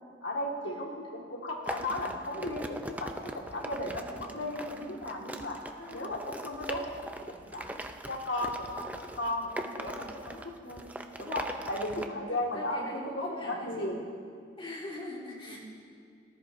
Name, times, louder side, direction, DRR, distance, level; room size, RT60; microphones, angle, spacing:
voice 1, 0.2-5.6 5.9-7.0 7.3-10.9 11.2-14.0 15.5-15.6, left 1 dB, 75° left, 0 dB, 1.8 m, -35 dB
sound 1, 1.7-12.1, right 1 dB, 10° right, 0.4 m, -41 dB
voice 2, 11.9-13.9 14.6-15.6, left 1 dB, 30° left, -7 dB, 3.2 m, -42 dB
19.0 x 13.5 x 2.6 m, 2.3 s
head